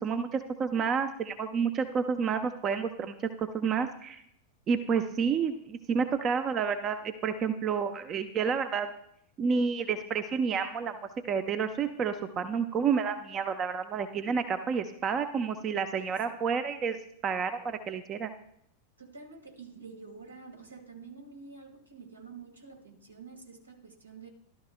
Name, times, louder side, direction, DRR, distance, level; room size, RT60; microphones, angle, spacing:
voice 1, 0.0-4.2 4.7-8.9 9.4-10.9 11.2-17.0 17.2-18.3, right 6 dB, 30° right, 9 dB, 0.6 m, -30 dB
voice 2, 19.0-24.3, right 4 dB, 80° right, 3 dB, 1.8 m, -48 dB
14.0 x 12.0 x 2.2 m, 0.71 s
figure-of-eight pair, 90°, 0 cm